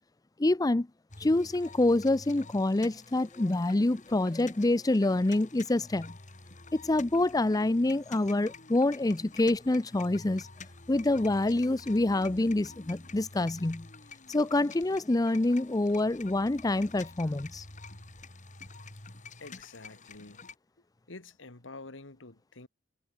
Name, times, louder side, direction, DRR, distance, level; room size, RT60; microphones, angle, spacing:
voice 1, 0.4-0.9 1.2-6.1 6.7-10.5 10.9-13.9 14.3-17.7, left 2 dB, 20° left, 0.5 m, -26 dB
sound 1, 1.1-20.5, left 3 dB, 40° left, 4.1 m, -49 dB
voice 2, 19.4-20.5 21.1-22.7, left 3 dB, 85° left, 2.0 m, -48 dB
head